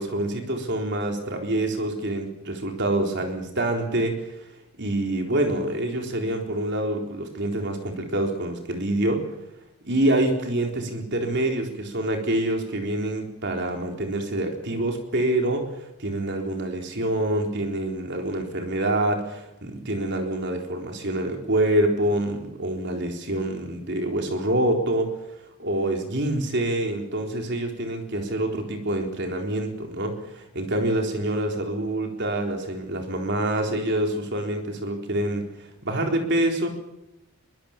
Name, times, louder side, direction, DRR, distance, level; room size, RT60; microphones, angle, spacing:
voice 1, 0.0-4.3 4.8-9.2 9.8-15.7 16.0-25.1 25.6-35.5 35.8-36.7, right 1 dB, 50° right, 3 dB, 4.0 m, -26 dB
22.5 x 21.0 x 7.4 m, 0.89 s
head